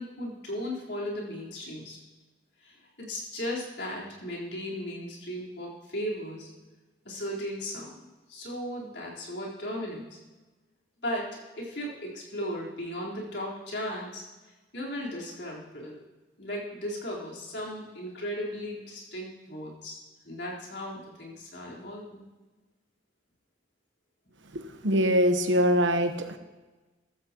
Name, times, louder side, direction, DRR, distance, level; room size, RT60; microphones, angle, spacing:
voice 1, 0.0-2.0 2.6-6.5 7.0-10.2 11.0-14.2 14.7-16.0 16.4-22.2, equal, 70° left, -4 dB, 4.0 m, -36 dB
voice 2, 24.5-26.4, equal, 85° right, 7 dB, 1.1 m, -24 dB
14.5 x 14.0 x 3.0 m, 1.2 s
head